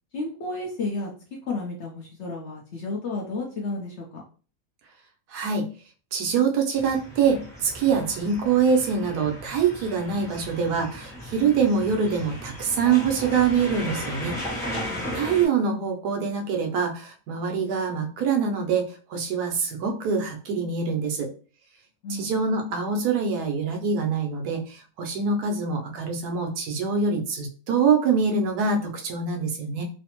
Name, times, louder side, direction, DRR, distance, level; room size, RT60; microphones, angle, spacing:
voice 1, 0.1-1.1 1.5-4.2 14.9-15.3 22.0-22.3, left 3 dB, 60° left, -1 dB, 0.8 m, -32 dB
voice 2, 5.3-5.6 6.1-14.3 15.1-21.3 22.1-29.8, right 5 dB, 80° right, 3 dB, 1.2 m, -24 dB
sound 1, 6.8-15.5, equal, ahead, 0.9 m, -36 dB
3.2 x 2.0 x 2.9 m, 0.37 s
omnidirectional pair, 1.7 m